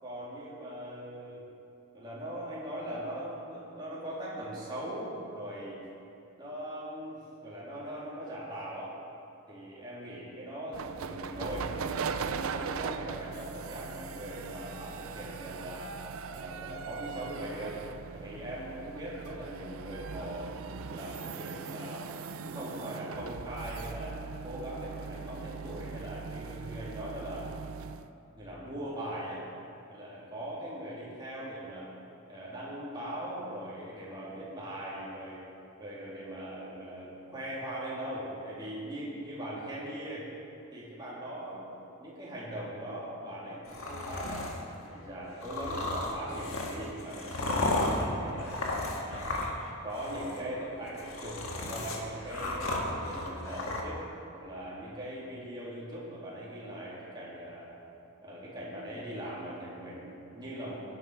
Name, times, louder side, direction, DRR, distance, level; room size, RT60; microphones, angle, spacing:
voice 1, 0.0-1.5 1.9-5.8 6.4-7.2 7.4-9.0 9.5-11.7 12.2-15.9 16.3-17.8 18.1-22.0 22.4-24.2 24.4-27.5 28.4-29.4 29.9-31.9 32.3-35.4 35.8-40.3 40.7-44.5 44.9-48.6 48.9-49.4 49.8-54.0 54.3-57.7 58.2-60.8, right 1 dB, 20° right, -8 dB, 2.8 m, -40 dB
sound 1, 10.7-28.1, right 5 dB, 80° right, 0.5 m, -40 dB
sound 2, 43.7-44.6 45.4-49.7 49.9-50.4 50.9-53.8, left 2 dB, 80° left, 1.6 m, -34 dB
16.5 x 9.1 x 4.6 m, 2.6 s
head